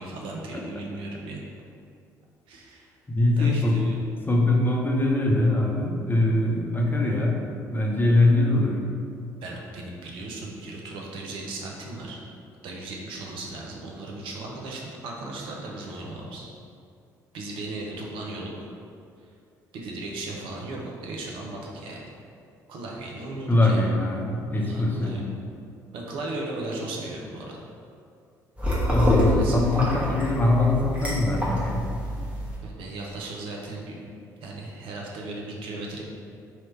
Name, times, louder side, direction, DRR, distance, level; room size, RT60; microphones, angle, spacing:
voice 1, 0.0-1.4 2.5-2.9 3.4-4.0 9.4-12.2 12.6-16.5 17.3-18.7 19.7-22.1 22.7-23.8 24.5-25.2 25.9-27.6 29.3-29.6 32.6-34.1 34.4-36.0, right 2 dB, 65° right, -1 dB, 0.7 m, -36 dB
voice 2, 3.1-3.8 4.3-7.4 7.7-8.8 23.5-25.2 28.9-31.9, left 2 dB, 20° left, -1 dB, 0.8 m, -22 dB
sound 1, 28.6-32.6, equal, 15° right, 1.3 m, -26 dB
3.1 x 2.9 x 4.4 m, 2.4 s
hypercardioid pair, 50°, 9 cm